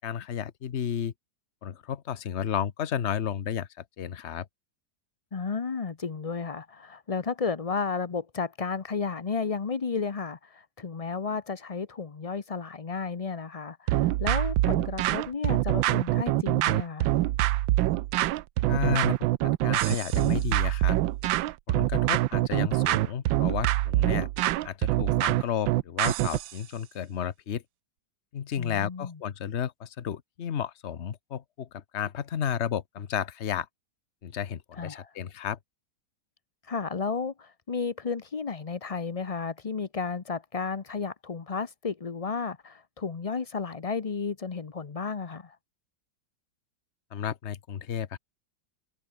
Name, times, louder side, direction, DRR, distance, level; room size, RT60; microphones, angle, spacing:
voice 1, 0.0-1.1 1.6-4.5 18.7-19.2 19.4-21.0 21.7-24.3 24.6-27.6 28.3-33.7 34.2-35.6 47.1-48.2, left 8 dB, 45° left, 1.1 m, -32 dB
voice 2, 5.3-17.1 28.6-29.2 34.8-35.1 36.6-45.6, left 5 dB, 70° left, 0.3 m, -33 dB
sound 1, 13.9-26.5, right 15 dB, 85° right, 1.4 m, -25 dB
omnidirectional pair, 2.0 m